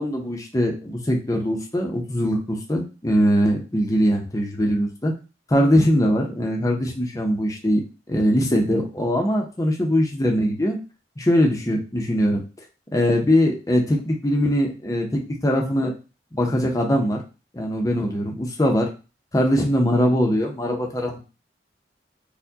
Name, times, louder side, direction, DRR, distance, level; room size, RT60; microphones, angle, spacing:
voice 1, 0.0-5.1 5.5-7.8 8.1-10.8 11.2-12.4 12.9-15.9 16.3-17.2 17.5-18.9 19.3-21.2, equal, 20° left, 0 dB, 0.6 m, -21 dB
4.3 x 2.2 x 2.7 m, 0.32 s
head